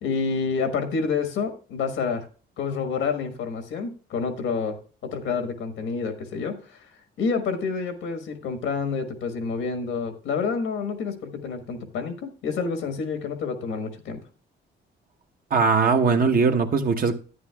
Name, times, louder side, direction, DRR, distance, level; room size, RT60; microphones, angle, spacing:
voice 1, 0.0-2.3 2.6-4.8 5.0-6.9 7.2-14.2, left 5 dB, 85° left, 1.3 m, -28 dB
voice 2, 15.5-17.1, right 5 dB, 45° right, 0.9 m, -20 dB
11.0 x 9.2 x 2.3 m
cardioid pair, 90°, 20 cm